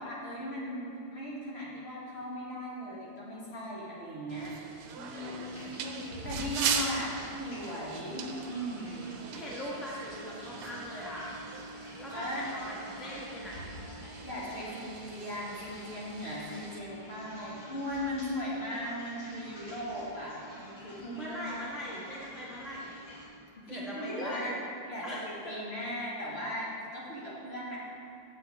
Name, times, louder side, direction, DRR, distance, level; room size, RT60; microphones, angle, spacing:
voice 1, 0.0-4.5 5.1-5.6 6.2-7.0 7.4-9.1 12.1-12.4 14.0-22.0 23.5-24.5 24.9-27.8, equal, 35° left, -7 dB, 1.4 m, -38 dB
sound 1, 4.3-16.8, right 6 dB, 85° right, 1.6 m, -40 dB
voice 2, 5.0-6.0 6.5-7.1 9.3-11.3 11.9-13.7 21.0-22.9 23.7-24.5 25.0-25.6, left 1 dB, ahead, -6 dB, 0.6 m, -40 dB
sound 2, 5.1-23.3, equal, 50° left, 2.4 m, -48 dB
8.1 x 8.0 x 3.4 m, 2.8 s
omnidirectional pair, 2.4 m